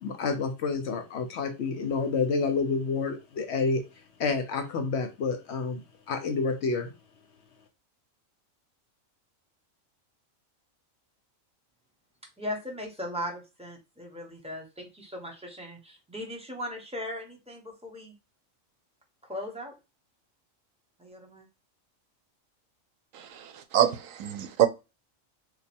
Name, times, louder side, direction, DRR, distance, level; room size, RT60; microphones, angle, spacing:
voice 1, 0.0-3.8 4.2-5.8 6.1-6.9, left 4 dB, 65° left, 0.8 m, -29 dB
voice 2, 12.4-18.1 19.3-19.7 21.0-21.5, left 1 dB, 5° right, 0.7 m, -38 dB
voice 3, 23.1-24.7, right 11 dB, 80° right, 1.0 m, -26 dB
3.0 x 2.3 x 4.2 m
omnidirectional pair, 1.4 m